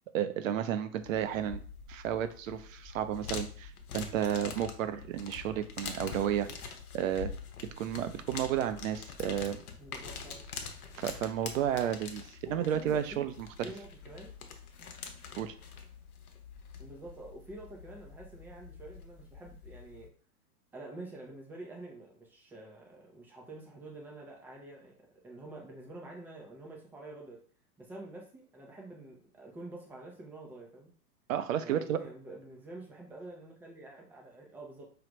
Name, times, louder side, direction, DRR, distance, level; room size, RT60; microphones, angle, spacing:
voice 1, 0.1-1.6 1.9-7.3 7.8-9.6 10.9-13.7 15.4-15.5 31.3-32.0, right 10 dB, 60° right, 10 dB, 0.6 m, -32 dB
sound 1, 1.0-20.1, left 5 dB, 70° left, 0.8 m, -45 dB
voice 2, 9.8-10.4 12.5-13.3 13.6-14.3 16.8-20.1 20.7-24.9 25.2-27.4 27.8-30.9 31.6-34.9, right 2 dB, 5° right, -1 dB, 0.3 m, -47 dB
4.9 x 2.4 x 3.0 m, 0.43 s
figure-of-eight pair, 95°, 45 cm